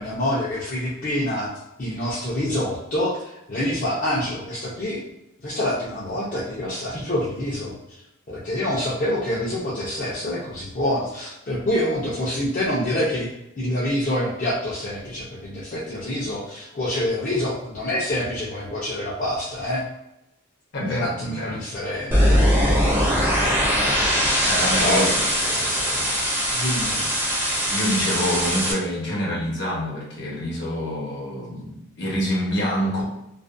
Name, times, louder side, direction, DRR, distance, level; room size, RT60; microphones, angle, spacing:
voice 1, 0.0-1.5 1.8-5.0 5.4-8.0 8.3-13.3 13.6-19.8 20.9-22.8 23.4-23.5 24.8-25.2 25.5-26.2 26.5-27.1, left 1 dB, 40° left, -8 dB, 0.5 m, -26 dB
voice 2, 20.7-21.6 23.3-23.4 24.4-25.0 27.7-33.0, equal, 55° left, -4 dB, 0.9 m, -26 dB
sound 1, 22.1-28.7, equal, 10° right, 0.5 m, -21 dB
2.4 x 2.1 x 2.5 m, 0.88 s
head